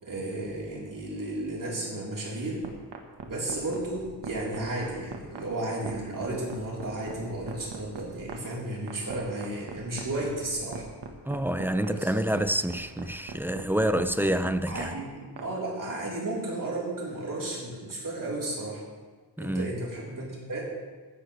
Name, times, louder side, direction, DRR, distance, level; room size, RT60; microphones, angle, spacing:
voice 1, 0.0-2.6 3.2-10.9 11.8-12.1 14.7-18.8 19.4-20.6, right 2 dB, 50° right, 4.1 m, -33 dB
sound 1, 2.6-15.5, right 6 dB, 85° right, 1.6 m, -40 dB
voice 2, 11.2-14.9 19.4-19.8, right 1 dB, 5° right, 0.4 m, -27 dB
15.5 x 13.0 x 3.4 m
wide cardioid pair, 140°, 42 cm